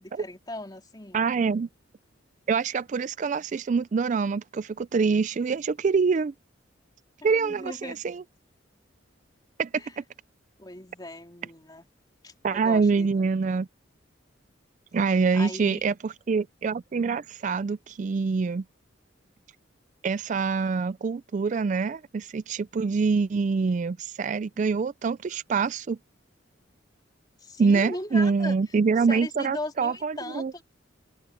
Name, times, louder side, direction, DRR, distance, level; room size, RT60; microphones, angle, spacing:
voice 1, 0.0-1.2 7.2-8.0 9.8-9.9 10.6-11.9 12.2-13.3 15.0-15.9 27.4-28.6 29.1-30.6, left 1 dB, 20° left, 3.7 m, -38 dB
voice 2, 1.1-1.7 2.5-6.3 7.2-8.2 9.6-9.7 10.0-10.1 12.4-13.7 14.9-18.6 20.0-26.0 27.6-30.6, right 5 dB, 40° right, 0.3 m, -25 dB
open air
head